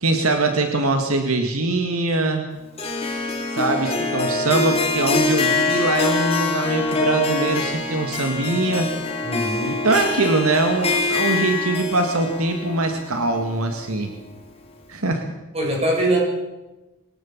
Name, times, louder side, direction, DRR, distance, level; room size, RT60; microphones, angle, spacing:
voice 1, 0.0-2.4 3.5-8.9 9.8-14.1 14.9-15.3, right 2 dB, 75° right, 5 dB, 2.0 m, -22 dB
Harp, 2.8-14.0, left 3 dB, 25° left, 3.5 m, -24 dB
voice 2, 9.2-9.8 15.5-16.2, right 1 dB, 25° right, -1 dB, 6.9 m, -22 dB
22.0 x 18.5 x 7.4 m, 1.1 s
head